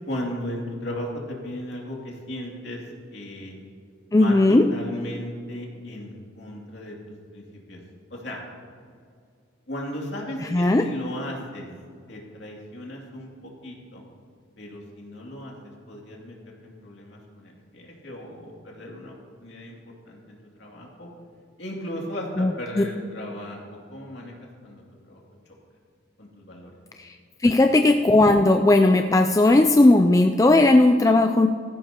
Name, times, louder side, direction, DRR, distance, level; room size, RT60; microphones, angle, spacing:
voice 1, 0.1-2.8 3.1-3.5 4.1-6.9 7.3-7.8 8.1-8.4 9.7-11.7 12.1-14.0 14.6-16.3 16.6-19.1 19.4-21.1 21.6-25.2 25.4-25.5 26.2-26.7 27.4-27.5, left 1 dB, 60° left, -2 dB, 2.7 m, -36 dB
voice 2, 4.1-4.6 10.5-10.8 22.4-22.8 27.4-31.5, left 2 dB, 15° left, 5 dB, 0.3 m, -17 dB
16.5 x 14.5 x 2.9 m, 2.2 s
head